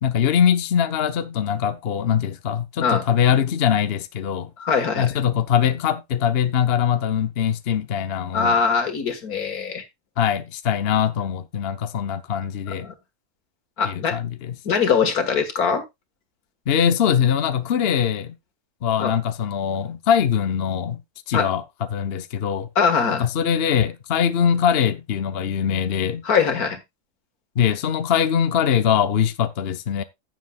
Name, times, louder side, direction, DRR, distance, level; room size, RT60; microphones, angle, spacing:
voice 1, 0.0-4.5 5.0-8.6 10.2-12.9 13.8-14.6 16.7-18.4 18.8-21.0 21.3-22.7 23.1-26.2 27.6-30.0, left 8 dB, 50° left, 0.9 m, -22 dB
voice 2, 4.6-5.1 8.3-9.8 12.8-12.9 13.8-14.2 14.7-15.8 19.0-19.1 21.3-21.5 22.8-23.2 26.3-26.8, left 6 dB, 85° left, 2.1 m, -21 dB
15.5 x 7.1 x 2.3 m
omnidirectional pair, 1.5 m